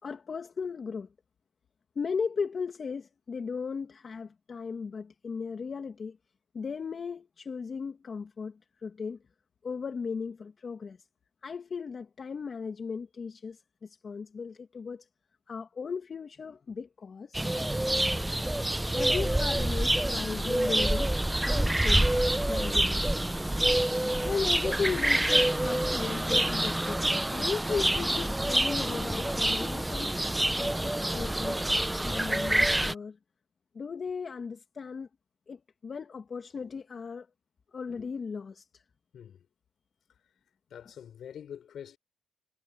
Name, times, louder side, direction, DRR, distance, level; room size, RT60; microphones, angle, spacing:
voice 1, 0.0-1.1 2.0-6.2 6.5-9.2 9.6-11.0 11.4-15.1 15.5-17.5 18.1-18.3 18.9-23.0 24.2-27.0 27.3-30.1 30.6-31.6 32.0-33.2 33.7-35.1 35.5-37.3 37.7-38.8, left 5 dB, 40° left, 2.3 m, -36 dB
sound 1, 17.3-32.9, right 1 dB, 10° right, 0.7 m, -27 dB
voice 2, 39.1-39.5 40.7-42.0, left 9 dB, 65° left, 5.6 m, -45 dB
cardioid pair, 90°, 0 cm